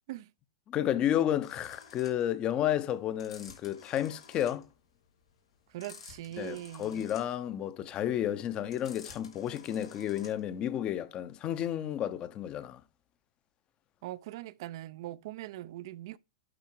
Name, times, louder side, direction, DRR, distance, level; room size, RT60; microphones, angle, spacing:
voice 1, 0.7-4.7 6.4-12.8, left 11 dB, 35° left, 1.0 m, -31 dB
sound 1, 1.4-10.6, left 5 dB, 85° left, 2.9 m, -52 dB
voice 2, 5.7-7.1 14.0-16.2, right 15 dB, 60° right, 0.6 m, -41 dB
11.5 x 4.6 x 4.7 m
hypercardioid pair, 110°, 3 cm